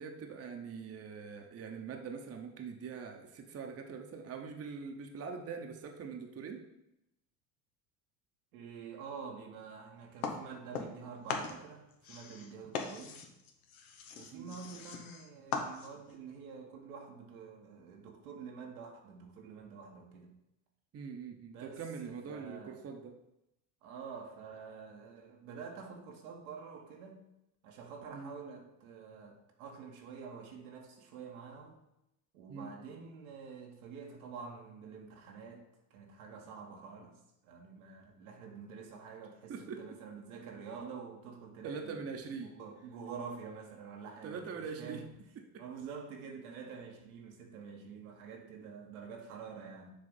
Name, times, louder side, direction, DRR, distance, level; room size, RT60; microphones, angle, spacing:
voice 1, 0.0-6.6 14.3-14.6 20.9-23.2 28.1-28.3 32.5-32.7 39.5-39.8 41.6-42.5 44.2-45.0 45.5-45.6, right 5 dB, 35° right, 3 dB, 0.9 m, -43 dB
voice 2, 8.5-13.2 14.1-20.3 21.5-22.8 23.8-27.2 27.6-31.8 32.3-35.6 35.9-45.1 45.6-49.9, right 6 dB, 80° right, 1 dB, 1.4 m, -48 dB
sound 1, 10.2-11.0 11.3-16.1, left 5 dB, 90° left, 1.0 m, -40 dB
6.7 x 3.4 x 5.5 m, 0.87 s
hypercardioid pair, 85°, 42 cm